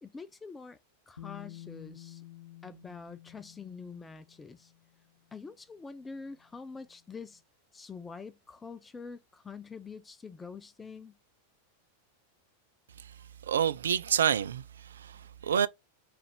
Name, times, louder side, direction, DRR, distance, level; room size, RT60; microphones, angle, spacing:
voice 1, 0.0-0.8 1.1-2.2 2.6-4.7 5.3-7.4 7.7-11.2, left 4 dB, 15° left, 0.4 m, -45 dB
Bass guitar, 1.2-5.1 6.2-6.3, left 14 dB, 80° left, 0.8 m, -50 dB
voice 2, 13.5-15.7, right 8 dB, 65° right, 0.3 m, -28 dB
4.4 x 2.5 x 3.1 m
figure-of-eight pair, 90°, 0 cm